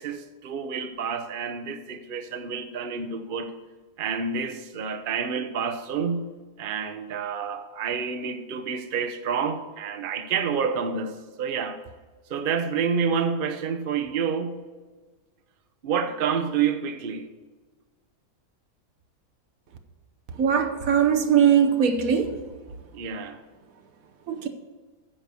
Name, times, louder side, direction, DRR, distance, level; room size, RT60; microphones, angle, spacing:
voice 1, 0.0-3.5 4.0-6.3 6.6-11.8 12.3-14.6 15.8-17.3 22.9-23.4, right 6 dB, 45° right, 7 dB, 0.8 m, -28 dB
voice 2, 20.4-22.3 24.3-24.5, right 8 dB, 70° right, 7 dB, 1.3 m, -20 dB
10.0 x 6.4 x 6.9 m, 1.4 s
omnidirectional pair, 1.6 m